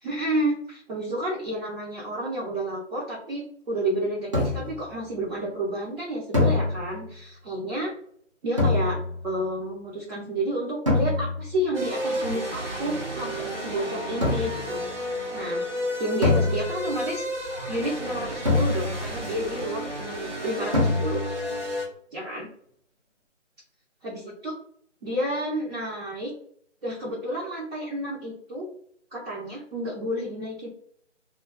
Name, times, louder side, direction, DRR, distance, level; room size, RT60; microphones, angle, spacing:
voice 1, 0.0-7.9 8.4-14.8 15.3-15.7 16.0-17.2 17.7-21.2 22.1-22.5 24.0-24.5 25.0-26.3 26.8-28.7 29.1-30.7, right 1 dB, 50° right, -5 dB, 0.8 m, -30 dB
sound 1, 4.3-4.9 6.3-7.2 8.6-9.3 10.9-11.6 14.2-14.8 16.2-17.1 18.4-19.2 20.7-21.4, left 3 dB, 25° right, 0.5 m, -25 dB
sound 2, 11.7-21.9, equal, 70° right, 1.2 m, -32 dB
2.3 x 2.3 x 2.2 m, 0.63 s
figure-of-eight pair, 155°, 37 cm